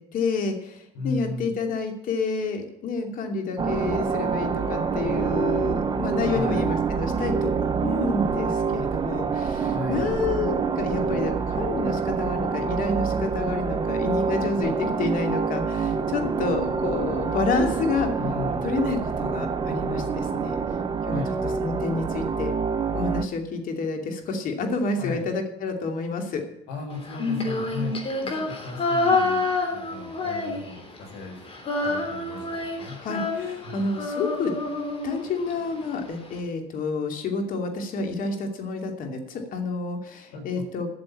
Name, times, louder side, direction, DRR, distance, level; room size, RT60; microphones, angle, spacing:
voice 1, 0.1-0.5 1.0-18.1 18.6-20.6 21.1-22.5 22.9-26.4 33.0-34.5 35.0-40.9, left 4 dB, 55° left, 4 dB, 2.7 m, -29 dB
voice 2, 0.9-1.5 6.2-6.7 9.7-10.2 18.2-18.8 21.1-21.3 25.0-25.2 26.7-28.0 28.2-31.4 31.8-33.0 33.6-33.8 40.3-40.6, left 4 dB, 80° left, 2 dB, 5.0 m, -35 dB
sound 1, 3.6-23.3, right 5 dB, 25° right, 0.9 m, -26 dB
Female singing, 27.1-31.0 31.2-35.5, left 3 dB, 35° left, 3.3 m, -27 dB
13.0 x 6.9 x 8.5 m, 0.83 s
cardioid pair, 110°, 17 cm